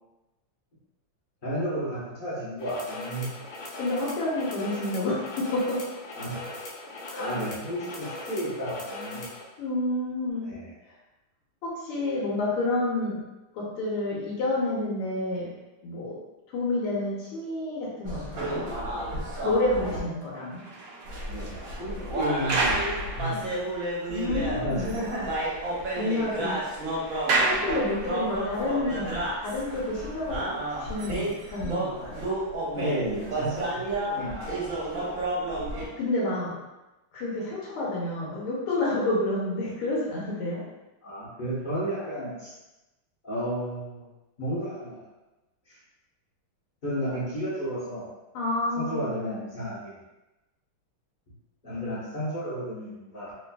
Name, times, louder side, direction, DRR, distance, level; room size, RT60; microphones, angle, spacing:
voice 1, 1.4-3.3 6.1-6.5 7.2-9.3 10.4-10.7 21.3-23.6 24.3-25.1 32.6-34.8 41.0-42.5 43.2-44.1 44.4-45.0 45.7-45.8 46.8-48.1 48.8-50.0 51.6-53.3, equal, 40° left, -9 dB, 0.7 m, -32 dB
sound 1, 2.6-9.4, left 2 dB, 65° left, 1.0 m, -39 dB
voice 2, 3.8-5.9 7.1-7.3 9.6-10.5 11.6-13.2 13.5-15.5 15.8-16.2 16.5-19.0 19.4-20.6 24.1-24.9 26.0-26.6 27.4-30.5 30.8-32.2 36.0-36.6 37.1-40.7 48.3-49.1, left 2 dB, 85° left, -5 dB, 1.7 m, -29 dB
sound 2, 18.0-20.0 21.1-35.9, right 1 dB, 55° right, 1.0 m, -32 dB
sound 3, 20.3-24.1 24.4-24.5 24.8-24.9 25.2-28.5 29.2-29.3, right 3 dB, 80° right, 0.9 m, -32 dB
3.3 x 3.2 x 2.2 m, 1.0 s
omnidirectional pair, 2.4 m